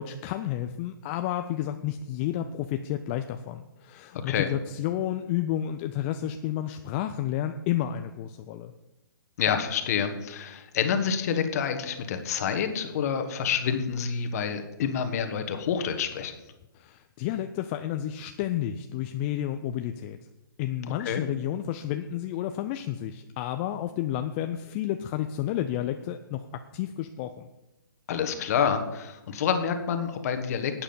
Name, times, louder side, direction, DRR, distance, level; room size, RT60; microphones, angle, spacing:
voice 1, 0.0-8.7 16.7-20.2 20.6-27.5, left 11 dB, 30° left, 7 dB, 0.5 m, -31 dB
voice 2, 9.4-16.3 21.0-21.2 28.1-30.7, left 7 dB, 45° left, 8 dB, 1.4 m, -28 dB
11.5 x 8.9 x 5.5 m, 0.98 s
figure-of-eight pair, 130°, 12 cm